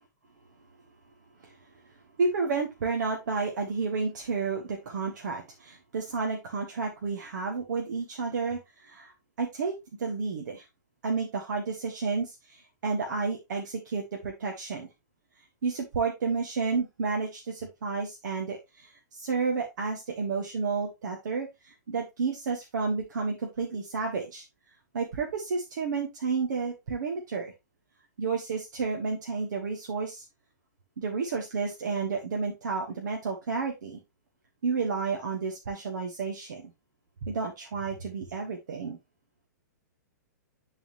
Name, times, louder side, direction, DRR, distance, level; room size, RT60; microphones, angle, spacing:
voice 1, 2.2-9.1 9.4-9.7 10.0-10.6 11.0-14.9 15.6-24.4 24.9-27.5 28.2-30.2 31.0-34.0 34.6-36.7 37.2-39.0, right 4 dB, 70° right, 1 dB, 1.5 m, -31 dB
10.5 x 4.1 x 2.6 m, 0.21 s
hypercardioid pair, 120°, 10 cm